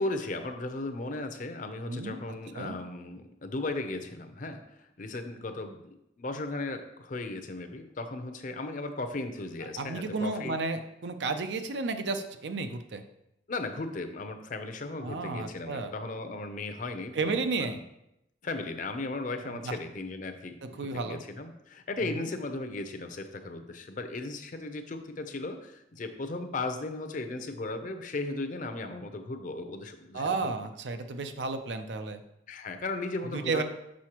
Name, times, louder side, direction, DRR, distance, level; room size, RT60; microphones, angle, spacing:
voice 1, 0.0-4.6 5.0-5.8 6.2-10.6 13.5-17.8 18.4-30.5 32.5-33.6, left 2 dB, 45° left, 7 dB, 0.6 m, -36 dB
voice 2, 1.9-2.2 2.5-2.8 9.8-13.0 15.0-15.9 17.1-17.8 19.4-19.8 20.6-21.2 22.0-22.3 30.1-32.2 33.3-33.6, right 3 dB, 85° right, 8 dB, 0.5 m, -32 dB
6.2 x 5.7 x 2.9 m, 0.83 s
head